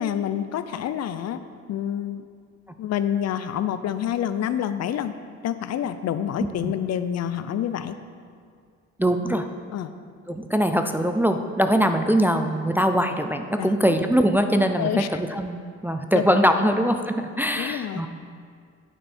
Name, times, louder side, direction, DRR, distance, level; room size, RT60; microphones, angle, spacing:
voice 1, 0.0-1.4 1.7-2.3 2.8-5.1 5.4-8.0 9.7-9.9 13.6-13.9 14.8-15.2 16.1-16.2 17.6-18.0, left 10 dB, 60° left, 11 dB, 0.5 m, -27 dB
voice 2, 9.0-9.5 10.3-18.1, equal, 5° right, 6 dB, 0.3 m, -22 dB
9.6 x 5.5 x 4.3 m, 2.1 s
cardioid pair, 90°, 30 cm